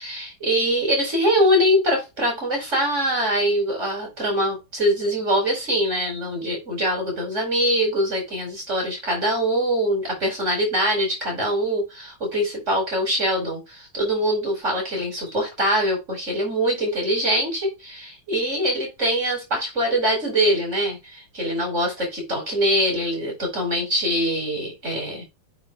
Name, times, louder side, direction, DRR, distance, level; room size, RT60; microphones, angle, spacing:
voice 1, 0.0-25.2, equal, 35° right, 5.1 m, -23 dB
8.8 x 7.7 x 2.4 m
omnidirectional pair, 2.3 m